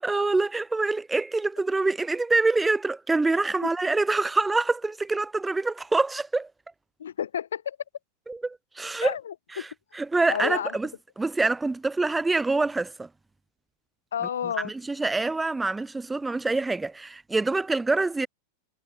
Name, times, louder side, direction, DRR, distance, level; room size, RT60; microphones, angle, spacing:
voice 1, 0.0-6.5 8.3-9.2 9.5-13.1 14.2-18.3, right 3 dB, 10° right, 0.9 m, -26 dB
voice 2, 7.0-7.8 9.0-9.7 10.3-10.7 14.1-14.7, left 9 dB, 65° left, 3.1 m, -31 dB
figure-of-eight pair, 90°, 0 cm